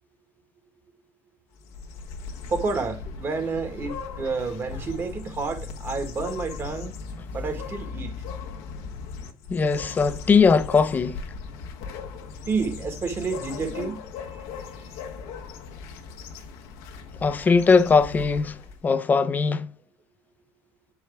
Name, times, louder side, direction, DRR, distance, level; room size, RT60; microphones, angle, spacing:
sound 1, 1.6-18.9, left 5 dB, 75° left, 1.2 m, -38 dB
voice 1, 2.5-6.9 7.3-8.2 12.5-14.0 14.3-14.4 14.8-15.0, right 4 dB, 40° right, 1.8 m, -30 dB
voice 2, 9.5-11.2 17.2-18.6 18.8-19.7, left 5 dB, 25° left, 0.7 m, -20 dB
7.1 x 4.8 x 3.4 m
supercardioid pair, 95°, 7 cm